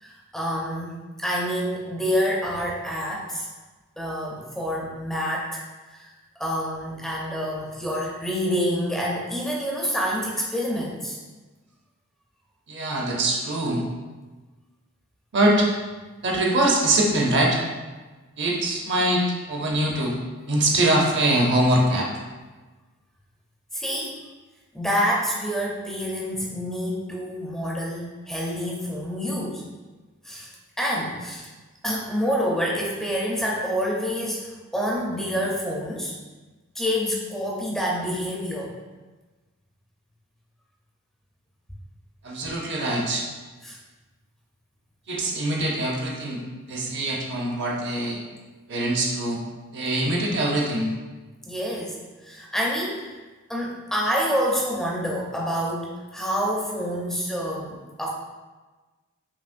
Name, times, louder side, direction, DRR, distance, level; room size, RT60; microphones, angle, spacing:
voice 1, 0.0-3.5 4.0-5.6 5.9-6.1 6.4-11.2 23.7-24.2 24.7-29.7 30.2-30.5 30.8-31.5 31.8-36.2 36.7-38.8 43.6-43.8 51.5-53.2 53.5-58.1, equal, ahead, -3 dB, 0.5 m, -27 dB
voice 2, 12.7-13.8 15.3-15.7 16.2-17.6 18.4-20.1 20.5-22.1 42.2-43.3 45.1-46.4 46.7-48.2 48.7-49.4 49.7-50.9, right 1 dB, 55° right, -1 dB, 0.7 m, -23 dB
5.4 x 2.8 x 2.5 m, 1.3 s
head